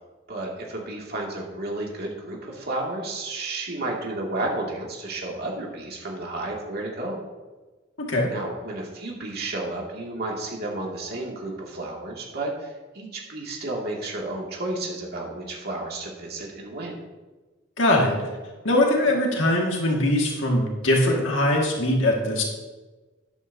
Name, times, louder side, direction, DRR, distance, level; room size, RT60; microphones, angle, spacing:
voice 1, 0.3-7.2 8.3-17.0, right 2 dB, 55° right, -2 dB, 2.3 m, -32 dB
voice 2, 8.0-8.3 17.8-18.3 18.6-22.4, left 1 dB, 75° left, -1 dB, 1.9 m, -21 dB
12.5 x 11.0 x 2.7 m, 1.3 s
head